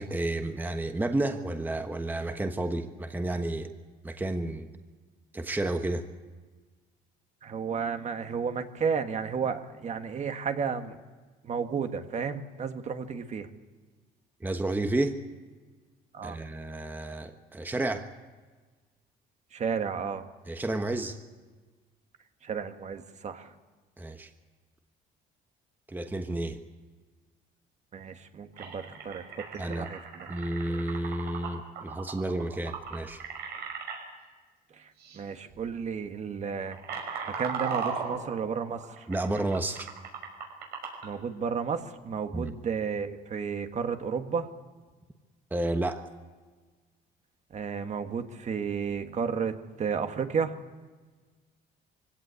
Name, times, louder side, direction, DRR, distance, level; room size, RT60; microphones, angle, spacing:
voice 1, 0.0-3.7 4.0-4.7 5.3-6.0 14.4-15.2 16.2-18.1 20.5-21.2 24.0-24.3 25.9-26.6 29.6-29.9 30.3-33.2 39.1-39.9 42.3-42.5 45.5-46.0, right 2 dB, 10° right, 6 dB, 1.3 m, -31 dB
voice 2, 7.4-11.0 11.4-13.5 16.1-16.4 19.5-20.3 22.4-23.5 27.9-30.3 34.7-37.0 37.4-39.1 41.0-44.5 47.5-50.5, right 6 dB, 45° right, 7 dB, 1.7 m, -32 dB
sound 1, 28.5-34.0 35.0-35.2 35.5-35.8 36.3-41.1, right 6 dB, 75° right, 6.2 m, -37 dB
23.0 x 17.0 x 8.2 m, 1.4 s
cardioid pair, 110°, 17 cm